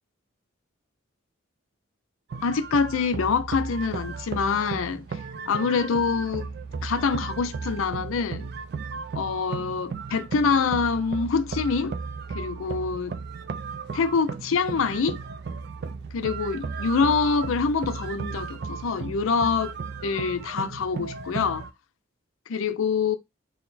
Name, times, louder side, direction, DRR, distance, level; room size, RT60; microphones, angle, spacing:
sound 1, 2.3-21.7, right 5 dB, 50° right, 0.3 m, -35 dB
voice 1, 2.4-6.5 6.8-8.5 9.1-12.0 12.3-13.2 13.9-15.2 16.1-19.8 20.0-21.7 22.5-23.2, left 5 dB, 80° left, 0.4 m, -25 dB
4.0 x 2.1 x 4.0 m
head